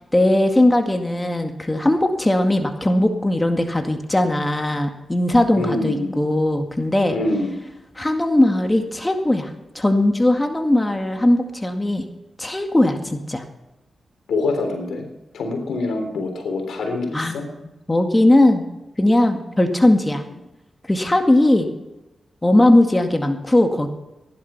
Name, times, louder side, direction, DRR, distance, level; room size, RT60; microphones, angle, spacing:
voice 1, 0.1-7.2 8.0-12.0 12.4-13.4 17.1-17.4 17.9-18.6 19.0-20.2 20.9-21.7 22.4-23.9, left 1 dB, 20° left, 5 dB, 2.0 m, -18 dB
voice 2, 5.5-6.2 7.1-7.6 14.3-15.1 15.3-17.5, left 2 dB, 85° left, 4 dB, 3.6 m, -25 dB
15.5 x 11.5 x 5.8 m, 0.98 s
cardioid pair, 50°, 0 cm